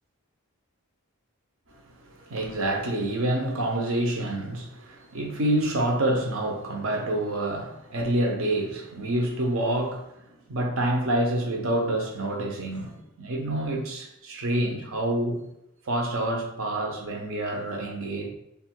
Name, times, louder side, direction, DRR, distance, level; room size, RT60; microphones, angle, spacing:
voice 1, 2.3-10.1 10.5-15.4 15.9-18.3, right 1 dB, 70° right, 1 dB, 0.8 m, -27 dB
3.3 x 2.4 x 4.4 m, 0.81 s
head